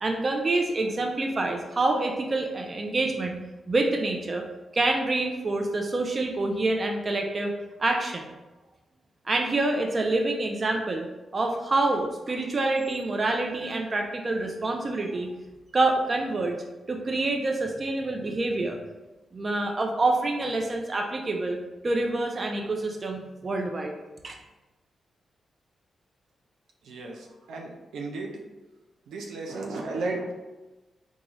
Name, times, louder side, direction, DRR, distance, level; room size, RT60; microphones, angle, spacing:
voice 1, 0.0-3.4 3.7-4.4 4.7-7.5 7.8-8.3 9.3-11.1 11.3-15.3 15.7-16.6 16.9-18.8 19.3-21.6 21.8-23.9 24.2-24.4, right 2 dB, 40° right, 3 dB, 0.5 m, -27 dB
voice 2, 26.8-28.4 29.1-30.3, right 3 dB, 90° right, 0 dB, 0.5 m, -34 dB
3.9 x 2.4 x 3.0 m, 1.1 s
cardioid pair, 70°, 0 cm